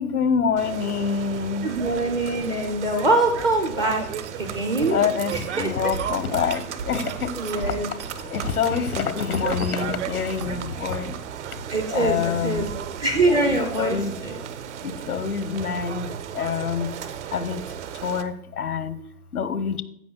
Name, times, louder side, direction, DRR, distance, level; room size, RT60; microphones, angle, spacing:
voice 1, 0.0-1.7 4.9-7.3 8.3-11.1 11.9-12.6 13.5-14.1 14.8-16.1 16.4-16.9 17.3-17.6 18.0-18.9 19.3-19.8, left 6 dB, 80° left, 13 dB, 1.0 m, -26 dB
sound 1, 0.6-18.2, right 9 dB, 50° right, 0.8 m, -34 dB
voice 2, 1.6-4.0 4.4-5.0 5.3-5.9 7.4-7.9 11.7-12.7 13.0-14.4, right 2 dB, 10° right, 5 dB, 0.4 m, -24 dB
sound 2, 2.5-11.2 12.2-12.4 13.6-13.7, right 2 dB, 80° right, 3.0 m, -40 dB
15.5 x 5.3 x 2.3 m, 0.73 s
figure-of-eight pair, 115°, 44 cm